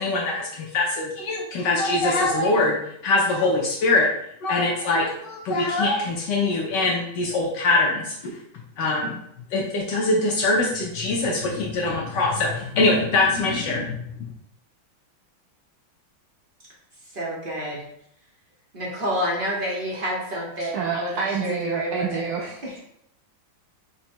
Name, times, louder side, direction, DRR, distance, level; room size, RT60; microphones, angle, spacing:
voice 1, 0.0-2.8 3.0-4.1 4.4-8.1 8.8-9.2 9.5-14.1, left 2 dB, 70° left, -2 dB, 1.2 m, -23 dB
voice 2, 17.1-17.8 18.7-21.1 21.4-22.2, equal, 40° right, -4 dB, 0.7 m, -28 dB
voice 3, 20.6-22.8, right 5 dB, 80° right, -1 dB, 0.8 m, -28 dB
5.1 x 2.2 x 4.3 m, 0.74 s
omnidirectional pair, 2.2 m